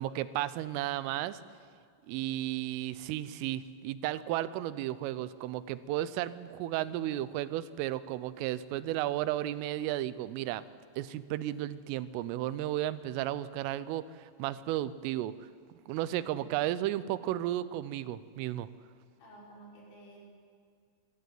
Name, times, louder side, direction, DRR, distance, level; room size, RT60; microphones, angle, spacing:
voice 1, 0.0-1.4 2.1-10.6 11.0-14.0 14.4-15.3 15.9-18.7, right 13 dB, 85° right, 15 dB, 3.3 m, -33 dB
voice 2, 19.2-20.3, right 2 dB, 75° left, -4 dB, 7.8 m, -52 dB
23.0 x 14.5 x 9.5 m, 2.1 s
omnidirectional pair, 5.8 m